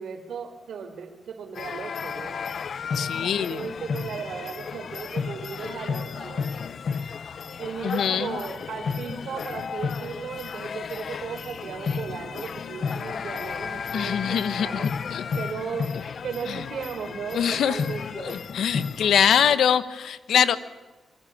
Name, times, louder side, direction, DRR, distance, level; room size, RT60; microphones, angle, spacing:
voice 1, 0.0-2.4 3.2-6.5 7.6-14.9 15.3-15.9 16.2-18.4 18.7-18.9, right 6 dB, 75° right, 7 dB, 3.8 m, -36 dB
sound 1, 1.5-19.6, left 6 dB, 55° left, 0.7 m, -33 dB
voice 2, 2.9-3.6 7.8-8.4 13.9-15.2 16.5-16.6 17.3-17.8 18.1-20.6, left 8 dB, 85° left, 14 dB, 1.1 m, -23 dB
24.5 x 23.5 x 7.3 m, 1.2 s
wide cardioid pair, 135°, 0 cm